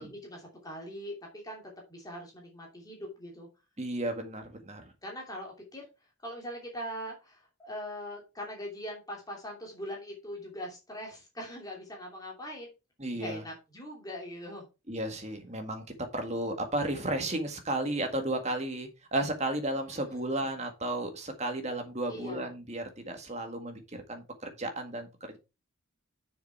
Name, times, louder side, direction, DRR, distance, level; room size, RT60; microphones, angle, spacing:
voice 1, 0.0-3.5 5.0-12.7 13.1-14.7 19.9-20.2 22.1-22.5, equal, 15° left, 0 dB, 2.8 m, -42 dB
voice 2, 3.8-4.9 13.0-13.4 14.9-25.4, right 1 dB, 30° right, 5 dB, 1.9 m, -33 dB
7.0 x 6.9 x 4.7 m, 0.27 s
head